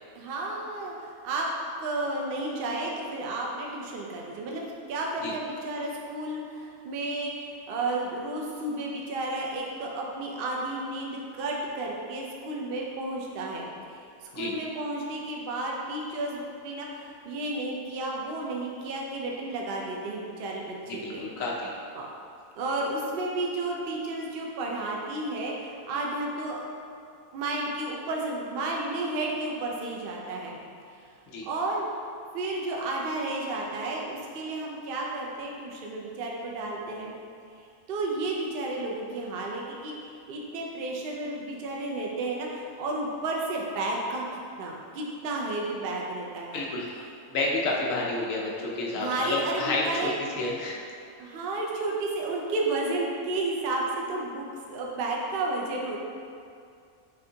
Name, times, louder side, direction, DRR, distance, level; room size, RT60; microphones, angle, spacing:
voice 1, 0.1-1.5 1.8-21.3 22.0-22.1 22.6-26.6 27.3-30.6 30.9-31.1 31.5-31.9 32.3-37.1 37.9-44.2 44.6-46.7 48.9-50.2 51.2-56.0, right 2 dB, 60° right, -2 dB, 0.6 m, -32 dB
voice 2, 20.9-21.7 31.3-31.4 46.5-47.0 47.3-50.1 50.4-50.8, left 2 dB, 70° left, -3 dB, 1.0 m, -30 dB
6.2 x 2.7 x 2.7 m, 2.4 s
omnidirectional pair, 1.5 m